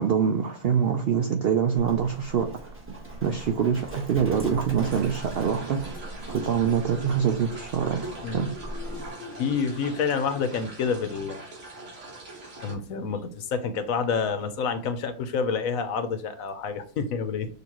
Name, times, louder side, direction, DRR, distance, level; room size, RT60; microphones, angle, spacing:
voice 1, 0.0-2.7 3.2-5.9 6.3-8.5, right 7 dB, 70° right, 4 dB, 0.5 m, -25 dB
Livestock farm animals working animals, 1.8-9.1, right 2 dB, 10° right, 1.1 m, -39 dB
sound 1, 4.8-12.8, right 2 dB, 55° right, 1.6 m, -42 dB
voice 2, 8.2-11.5 12.6-17.5, left 5 dB, 70° left, 8 dB, 1.0 m, -29 dB
6.6 x 2.7 x 2.9 m, 0.43 s
omnidirectional pair, 1.6 m